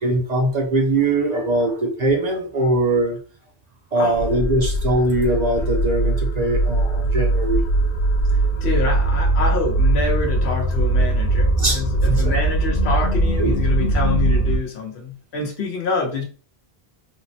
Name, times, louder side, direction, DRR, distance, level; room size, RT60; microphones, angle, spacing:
voice 1, 0.0-3.2 3.9-7.6 11.6-11.8 12.3-12.4 13.4-13.5, right 2 dB, 50° right, 1 dB, 0.6 m, -21 dB
voice 2, 3.9-4.3 8.3-16.2, left 4 dB, 80° left, 2 dB, 1.1 m, -26 dB
sound 1, 4.1-14.6, right 2 dB, 65° left, 0.7 m, -20 dB
3.5 x 2.1 x 2.7 m, 0.39 s
omnidirectional pair, 1.1 m